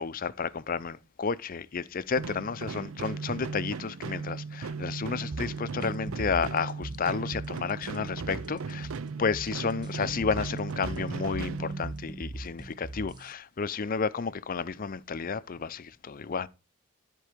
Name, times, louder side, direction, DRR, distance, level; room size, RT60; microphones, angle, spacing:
voice 1, 0.0-8.9 9.2-16.5, left 5 dB, 40° left, 0.5 m, -32 dB
sound 1, 2.2-12.3, right 5 dB, 75° right, 0.5 m, -37 dB
sound 2, 5.3-13.3, right 2 dB, 20° right, 0.4 m, -40 dB
13.0 x 4.6 x 5.0 m
head